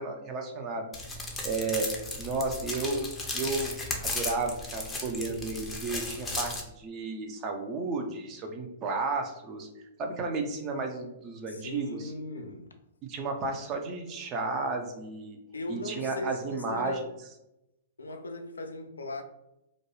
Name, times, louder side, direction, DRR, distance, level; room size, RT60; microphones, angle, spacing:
voice 1, 0.0-1.2 1.4-9.7 10.0-12.1 13.0-15.4 15.7-17.0, right 3 dB, 30° right, 0.6 m, -33 dB
sound 1, 0.9-6.6, left 2 dB, 10° left, 0.6 m, -35 dB
voice 2, 11.5-12.7 15.5-17.1 18.0-19.2, left 1 dB, 85° left, 0.4 m, -38 dB
2.5 x 2.2 x 3.0 m
hypercardioid pair, 115°, 0 cm